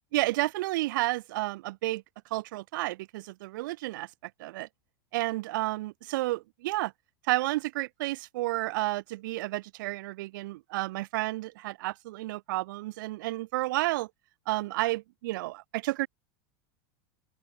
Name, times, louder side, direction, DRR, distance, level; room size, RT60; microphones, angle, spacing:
voice 1, 0.1-2.0 2.3-4.1 4.4-4.7 5.1-6.9 7.3-14.1 14.5-16.1, right 19 dB, 65° right, 1.3 m, -31 dB
open air
supercardioid pair, 165°, 11 cm